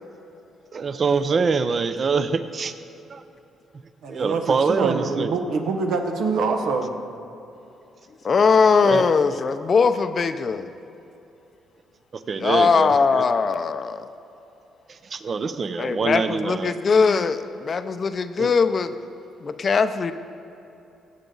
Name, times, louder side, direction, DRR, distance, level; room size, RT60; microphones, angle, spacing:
voice 1, 0.7-2.7 3.1-3.2 4.1-5.4 8.8-9.1 12.1-13.2 14.9-16.8 18.4-18.5, right 5 dB, 45° right, 11 dB, 0.6 m, -25 dB
voice 2, 4.0-7.0, right 4 dB, 80° right, 4 dB, 1.2 m, -25 dB
voice 3, 8.2-10.7 12.4-14.1 15.8-18.9 19.4-20.1, left 5 dB, 45° left, 10 dB, 0.5 m, -20 dB
16.0 x 8.3 x 3.9 m, 2.8 s
cardioid pair, 90°, 0 cm